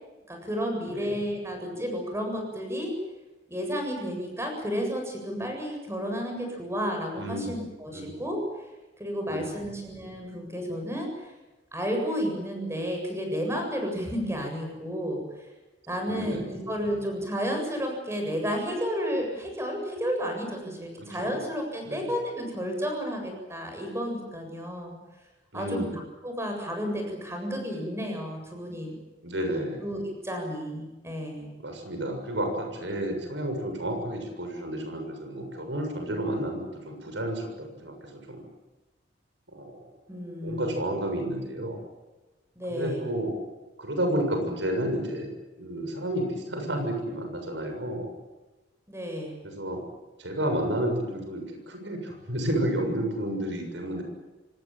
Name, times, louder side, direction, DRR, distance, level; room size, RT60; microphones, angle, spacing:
voice 1, 0.3-2.9 3.5-8.4 9.0-11.1 11.7-15.2 15.9-25.0 25.5-25.8 26.2-29.0 29.5-31.5 40.1-40.8 42.6-43.0 48.9-49.3, equal, 15° right, 3 dB, 7.7 m, -32 dB
voice 2, 0.9-1.2 7.2-7.6 7.9-8.2 9.3-9.6 16.1-16.6 21.0-21.4 21.8-22.1 25.5-26.0 29.2-29.8 31.6-38.4 39.5-39.8 40.4-41.8 42.7-43.4 43.8-45.3 45.6-48.1 49.4-49.8 50.2-54.0, right 1 dB, 90° right, 4 dB, 7.0 m, -31 dB
25.5 x 19.0 x 9.1 m, 1.1 s
head